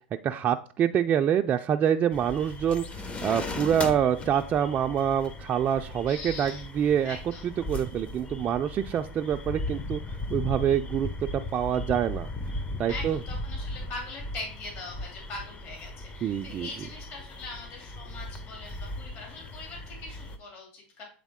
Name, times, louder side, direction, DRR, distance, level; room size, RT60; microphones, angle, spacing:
voice 1, 0.2-7.2 7.4-10.0 10.3-12.3 12.8-13.2 16.2-16.7, right 9 dB, 35° right, 4 dB, 0.4 m, -26 dB
sound 1, 2.1-20.4, left 2 dB, 25° left, 0.8 m, -37 dB
voice 2, 6.1-6.6 7.0-7.4 12.9-21.0, left 3 dB, 45° left, -2 dB, 2.7 m, -41 dB
8.2 x 3.6 x 3.6 m, 0.40 s
hypercardioid pair, 105°, 5 cm